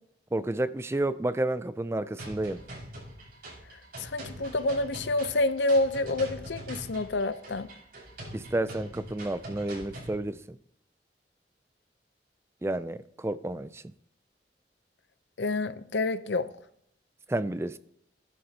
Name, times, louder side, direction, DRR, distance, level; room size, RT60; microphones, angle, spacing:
voice 1, 0.3-2.6 8.3-10.6 12.6-13.9 17.3-17.8, right 1 dB, 15° right, 0.4 m, -31 dB
sound 1, 2.2-10.2, right 1 dB, 55° right, 5.8 m, -43 dB
voice 2, 4.0-7.7 15.4-16.5, left 2 dB, 80° left, 0.7 m, -28 dB
18.0 x 11.0 x 2.9 m
head